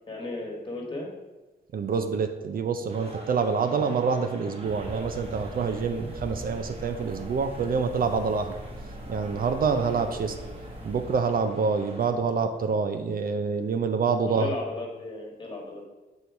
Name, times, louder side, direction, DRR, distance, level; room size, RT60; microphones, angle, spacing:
voice 1, 0.1-1.1 14.3-15.9, left 2 dB, 25° left, -1 dB, 1.5 m, -35 dB
voice 2, 1.7-8.5 9.1-10.3 10.8-14.5, right 5 dB, 55° right, 7 dB, 0.5 m, -26 dB
sound 1, 2.9-12.1, right 2 dB, 35° right, 1.1 m, -44 dB
sound 2, 4.6-11.3, equal, 10° right, 1.1 m, -41 dB
6.8 x 4.4 x 4.6 m, 1.1 s
wide cardioid pair, 140°, 18 cm